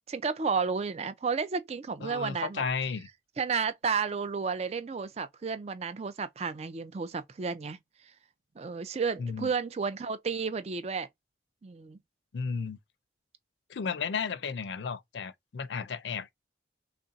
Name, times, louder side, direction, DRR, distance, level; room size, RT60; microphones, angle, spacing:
voice 1, 0.1-2.6 3.4-7.8 8.6-11.1 11.6-12.0, right 5 dB, 35° right, 0.4 m, -32 dB
voice 2, 2.0-3.1 9.2-9.5 12.3-12.8 13.7-16.3, left 5 dB, 85° left, 0.5 m, -33 dB
3.3 x 2.5 x 3.9 m
head